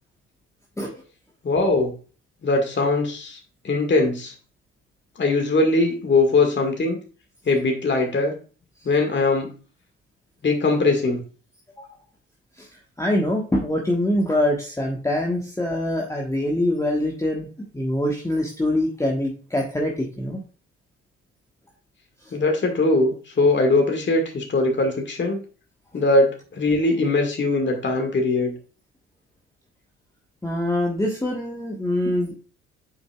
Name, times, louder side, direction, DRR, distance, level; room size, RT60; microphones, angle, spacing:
voice 1, 1.4-1.9 2.4-3.4 3.6-4.3 5.2-7.0 7.5-8.3 8.8-9.5 10.4-11.2 22.3-25.4 25.9-28.5, left 2 dB, 30° left, 2 dB, 1.9 m, -21 dB
voice 2, 12.6-17.5 17.7-20.4 22.2-22.3 30.4-32.4, left 1 dB, 10° left, -1 dB, 1.4 m, -24 dB
7.9 x 5.5 x 2.4 m, 0.37 s
figure-of-eight pair, 50°, 36 cm